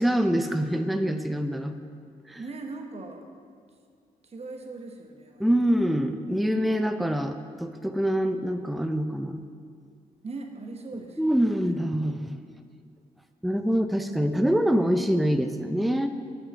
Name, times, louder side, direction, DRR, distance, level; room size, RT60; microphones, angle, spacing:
voice 1, 0.0-1.8 2.3-2.4 5.4-9.4 10.9-12.3 13.4-16.1, equal, ahead, 8 dB, 0.5 m, -25 dB
voice 2, 2.4-3.2 4.2-5.5 6.6-7.0 10.2-11.7, right 3 dB, 45° right, 4 dB, 1.1 m, -40 dB
6.2 x 6.1 x 6.6 m, 2.1 s
supercardioid pair, 60°, 15 cm